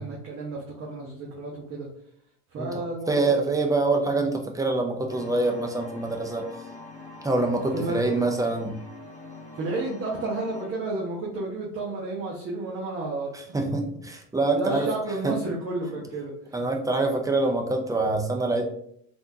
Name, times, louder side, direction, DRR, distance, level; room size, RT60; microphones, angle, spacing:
voice 1, 0.0-1.9 2.5-3.3 7.7-8.1 9.5-13.6 14.5-16.3, right 2 dB, 35° right, -3 dB, 0.8 m, -31 dB
voice 2, 2.6-6.4 7.2-8.8 13.5-14.9 15.2-15.3 16.5-18.7, right 2 dB, 10° right, 2 dB, 0.5 m, -25 dB
sound 1, 5.1-10.7, left 2 dB, 20° left, 1.2 m, -44 dB
3.5 x 2.6 x 2.7 m, 0.67 s
hypercardioid pair, 85°, 40 cm